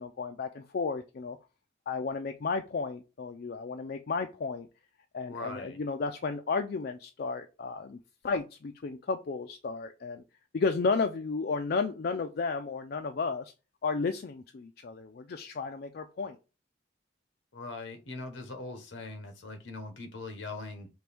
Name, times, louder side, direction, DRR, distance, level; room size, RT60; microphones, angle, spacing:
voice 1, 0.0-1.4 1.9-4.7 5.1-8.0 8.2-10.2 10.5-13.5 13.8-16.4, left 4 dB, 50° left, 0.3 m, -33 dB
voice 2, 5.2-5.8 17.5-20.9, left 2 dB, 70° left, 1.0 m, -41 dB
5.9 x 2.6 x 3.4 m
head